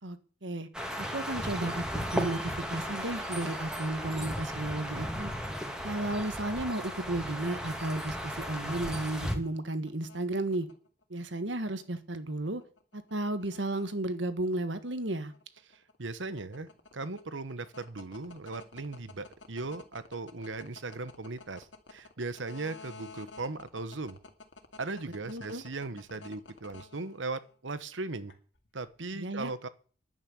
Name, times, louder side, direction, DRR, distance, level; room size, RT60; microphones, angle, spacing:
voice 1, 0.0-0.7 1.0-5.3 5.8-10.7 11.1-12.6 12.9-15.3 25.3-25.6 29.1-29.5, right 1 dB, 75° right, 11 dB, 1.6 m, -33 dB
sound 1, 0.7-9.4, equal, 5° right, 2.2 m, -35 dB
sound 2, 9.3-27.5 28.3-28.9, left 3 dB, 70° left, 2.3 m, -51 dB
voice 2, 15.7-24.2 24.8-28.3 28.7-29.7, right 3 dB, 90° right, 14 dB, 1.2 m, -38 dB
11.0 x 9.0 x 8.3 m, 0.41 s
head